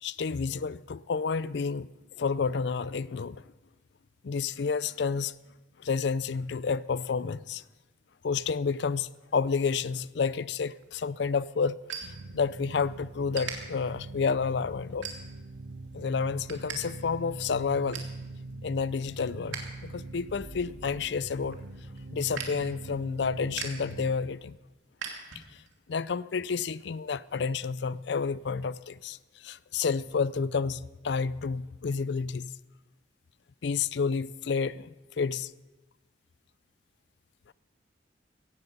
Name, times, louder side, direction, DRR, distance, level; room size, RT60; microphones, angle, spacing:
voice 1, 0.0-3.4 4.2-5.3 5.8-7.6 8.2-15.1 15.9-18.0 18.6-21.6 22.1-24.6 25.5-25.6 25.9-32.5 33.6-35.5 37.5-37.6, left 5 dB, 65° left, 0.4 m, -30 dB
sound 1, 10.7-12.8 13.3-13.5 14.1-14.3 15.0-15.6 16.0-16.8 17.1-17.2 17.5-18.2 18.6-19.7 20.0-25.8, right 6 dB, 85° right, 2.6 m, -42 dB
sound 2, 12.0-24.1, right 2 dB, 60° right, 0.9 m, -43 dB
17.0 x 15.0 x 5.4 m
head